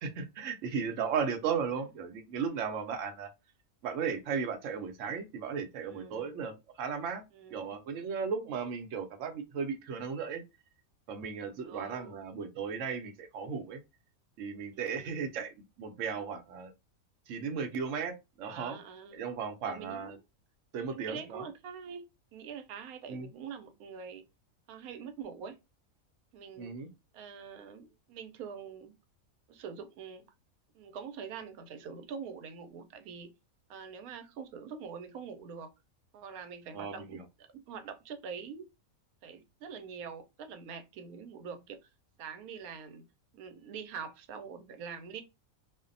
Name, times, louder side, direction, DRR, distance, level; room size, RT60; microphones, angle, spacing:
voice 1, 0.0-3.3 3.8-7.2 7.5-10.4 11.1-13.8 14.4-16.7 17.3-18.8 19.1-20.2 20.7-21.4 23.1-23.3 26.6-26.9 36.7-37.2, right 6 dB, 70° right, 0.9 m, -36 dB
voice 2, 5.8-6.3 7.3-7.8 8.0-8.5 11.6-12.3 14.7-15.5 18.5-19.3 19.6-20.2 20.9-22.0 22.3-24.3 24.7-25.6 26.3-26.7 27.1-28.9 29.5-30.3 30.7-33.3 33.7-35.7 36.1-37.2 37.5-38.7 39.2-41.9 42.2-43.1 43.3-45.2, right 6 dB, 90° right, 1.0 m, -45 dB
2.6 x 2.1 x 2.5 m
omnidirectional pair, 1.5 m